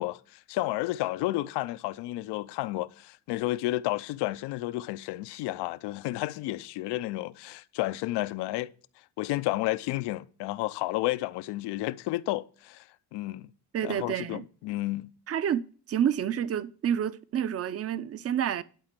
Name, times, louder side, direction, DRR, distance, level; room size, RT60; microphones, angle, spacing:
voice 1, 0.0-8.7 9.2-12.8 13.1-13.5 13.8-15.1, left 17 dB, 80° left, 0.7 m, -31 dB
voice 2, 13.7-14.4 15.3-18.6, right 9 dB, 35° right, 0.7 m, -29 dB
11.5 x 4.2 x 7.5 m
cardioid pair, 115°, 40 cm